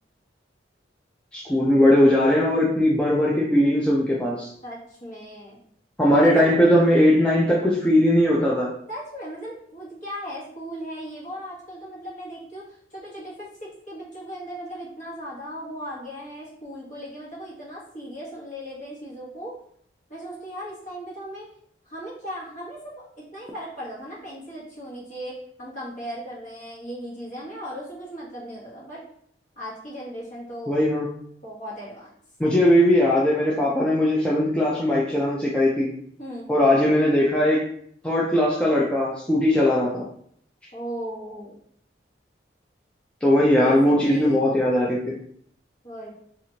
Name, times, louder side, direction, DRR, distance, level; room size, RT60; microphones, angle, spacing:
voice 1, 1.3-4.5 6.0-8.7 30.7-31.1 32.4-35.9 36.5-37.7 38.0-40.1 43.2-45.1, left 1 dB, 5° left, -5 dB, 0.3 m, -19 dB
voice 2, 4.6-5.6 6.1-6.6 8.9-19.5 20.1-21.5 21.9-29.0 29.6-30.8 31.4-32.1 36.2-36.5 40.7-41.5 43.3-44.4 45.8-46.1, equal, 45° left, -6 dB, 1.1 m, -37 dB
2.9 x 2.4 x 2.8 m, 0.64 s
head